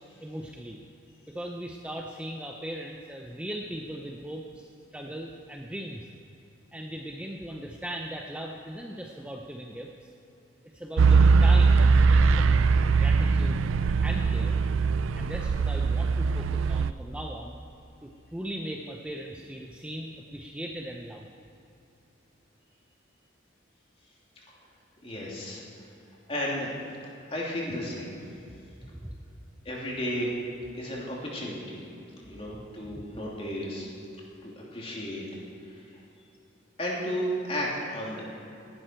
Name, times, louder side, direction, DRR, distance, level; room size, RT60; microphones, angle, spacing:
voice 1, 0.2-0.8 1.3-6.1 6.7-10.1 10.7-12.6 12.9-13.6 14.0-14.5 15.2-17.6 18.0-21.3 28.8-29.2 32.8-33.0 37.3-37.4, right 1 dB, 5° right, 0 dB, 0.6 m, -39 dB
sound 1, 11.0-16.9, right 4 dB, 85° right, 0.4 m, -21 dB
voice 2, 25.0-25.6 26.3-26.7 27.3-28.2 29.6-30.3 30.7-31.8 32.2-33.9 34.4-35.3 35.7-36.0 36.8-38.2, equal, 30° left, -4 dB, 2.9 m, -33 dB
17.5 x 11.5 x 4.5 m, 2.8 s
head